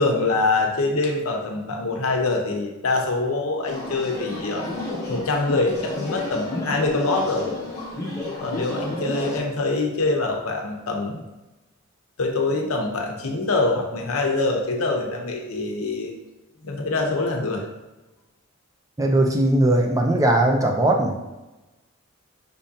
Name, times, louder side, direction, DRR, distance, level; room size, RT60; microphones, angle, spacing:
voice 1, 0.0-4.7 5.1-7.5 8.4-11.2 12.2-16.1 16.6-17.7, left 3 dB, 80° left, 2 dB, 0.7 m, -24 dB
sound 1, 3.6-9.4, left 1 dB, 15° left, 0.8 m, -31 dB
voice 2, 19.0-21.2, right 1 dB, 15° right, 1 dB, 0.4 m, -19 dB
5.3 x 3.5 x 2.7 m, 1.1 s
head